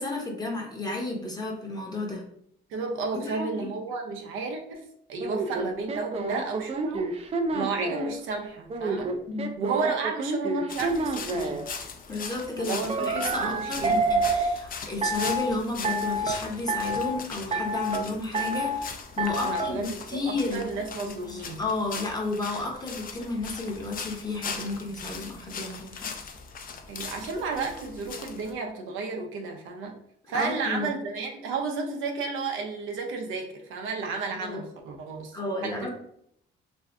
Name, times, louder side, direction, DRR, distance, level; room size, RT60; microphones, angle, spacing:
voice 1, 0.0-2.2 3.1-3.7 9.3-9.5 12.1-20.7 21.0-26.1 30.3-30.9 34.4-34.6 35.3-35.9, left 2 dB, 20° left, 0 dB, 0.8 m, -32 dB
voice 2, 2.7-9.2 9.6-11.6 12.6-14.0 19.4-21.6 26.9-30.0 30.3-35.3 35.6-35.9, right 4 dB, 85° right, 2 dB, 0.6 m, -32 dB
sound 1, 5.2-8.1 8.7-11.6 12.9-14.5 15.0-15.5 15.8-16.4 16.7-17.2 17.5-18.0 18.3-18.8 19.2-19.7, right 2 dB, 30° right, 0.4 m, -28 dB
sound 2, 10.7-28.5, left 5 dB, 45° left, 0.5 m, -40 dB
2.6 x 2.3 x 3.3 m, 0.71 s
cardioid pair, 90°, 20 cm